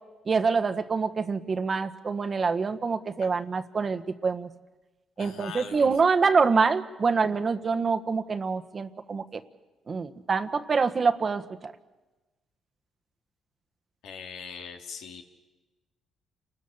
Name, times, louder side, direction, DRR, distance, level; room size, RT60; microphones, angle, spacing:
voice 1, 0.3-4.5 5.2-9.4 9.9-11.7, right 5 dB, 40° right, 10 dB, 1.4 m, -26 dB
voice 2, 5.2-5.9 14.0-15.2, left 6 dB, 85° left, 3 dB, 2.9 m, -41 dB
29.0 x 20.5 x 7.2 m, 1.2 s
cardioid pair, 90°, 0 cm